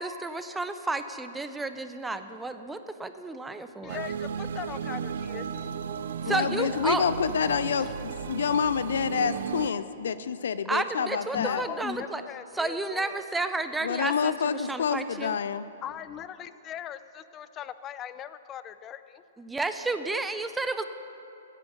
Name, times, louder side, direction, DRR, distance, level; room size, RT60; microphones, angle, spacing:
voice 1, 0.0-4.0 6.2-7.0 10.7-12.2 12.5-15.4 19.4-20.8, right 3 dB, 10° right, 9 dB, 0.7 m, -31 dB
voice 2, 3.8-5.5 11.3-13.2 15.8-17.0 17.3-19.2, left 10 dB, 25° left, 14 dB, 0.6 m, -39 dB
sound 1, 3.9-9.7, right 7 dB, 70° right, 0.5 m, -35 dB
voice 3, 6.3-11.6 13.8-15.7, left 7 dB, 75° left, 14 dB, 0.5 m, -28 dB
15.0 x 9.3 x 7.0 m, 2.8 s
hypercardioid pair, 120°, 0 cm